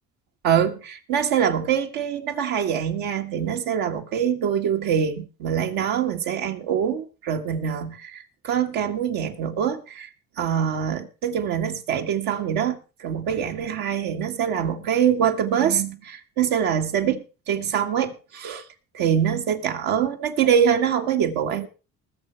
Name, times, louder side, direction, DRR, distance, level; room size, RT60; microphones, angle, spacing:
voice 1, 0.4-10.1 10.4-18.6 18.9-21.7, right 8 dB, 80° right, 3 dB, 1.9 m, -24 dB
20.5 x 7.0 x 4.5 m, 0.34 s
supercardioid pair, 65°, 35 cm